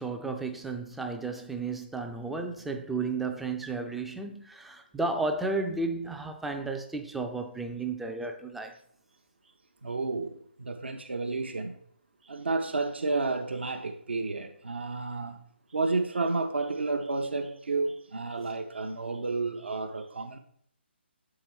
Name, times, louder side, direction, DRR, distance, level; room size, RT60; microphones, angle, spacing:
voice 1, 0.0-8.7, right 3 dB, ahead, 0.3 m, -33 dB
voice 2, 9.8-11.8 12.2-15.4 15.7-20.4, right 3 dB, 65° right, 0.6 m, -31 dB
7.1 x 4.8 x 3.1 m
figure-of-eight pair, 140°, 6 cm